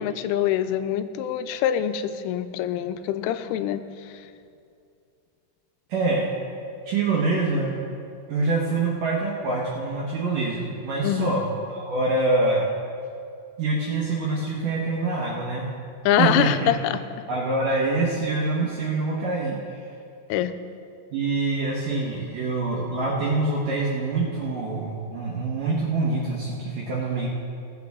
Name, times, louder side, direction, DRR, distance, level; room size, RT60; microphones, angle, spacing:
voice 1, 0.0-3.8 11.0-11.3 16.1-17.0 20.3-20.5, left 11 dB, 85° left, 11 dB, 3.0 m, -24 dB
voice 2, 5.9-6.3 6.8-7.7 8.3-12.7 13.6-15.6 16.2-16.7 17.3-19.9 21.1-27.3, right 3 dB, 70° right, -5 dB, 2.0 m, -25 dB
17.5 x 8.6 x 3.6 m, 2.4 s
omnidirectional pair, 5.6 m